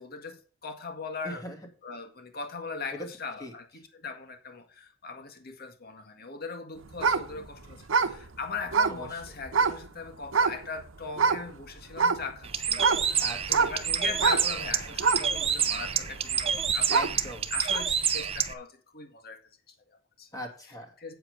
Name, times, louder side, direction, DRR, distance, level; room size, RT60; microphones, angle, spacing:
voice 1, 0.0-1.4 1.8-13.0 13.5-17.1 17.5-19.4 19.7-20.3 20.6-21.1, left 4 dB, 50° left, 1.8 m, -40 dB
voice 2, 1.2-1.6 3.4-3.5 9.0-9.2 13.2-13.7 16.9-17.5 20.3-20.9, equal, 20° left, 2.7 m, -40 dB
sound 1, 6.9-9.9 10.3-10.8 11.1-11.5 11.9-17.3 17.7-17.8, right 5 dB, 75° right, 1.0 m, -26 dB
Bird, 12.4-18.5, right 7 dB, 30° right, 0.9 m, -28 dB
9.0 x 7.9 x 5.1 m
head